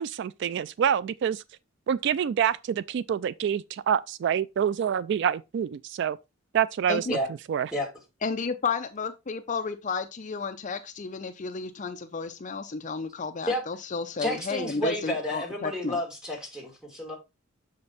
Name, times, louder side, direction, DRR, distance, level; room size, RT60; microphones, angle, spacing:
voice 1, 0.0-1.4 1.9-6.2 6.5-7.1 7.5-7.7, right 8 dB, 60° right, 0.3 m, -26 dB
voice 2, 8.2-16.0, left 4 dB, 40° left, 0.5 m, -32 dB
voice 3, 14.2-17.2, equal, 5° right, 2.5 m, -31 dB
6.9 x 5.2 x 4.0 m
head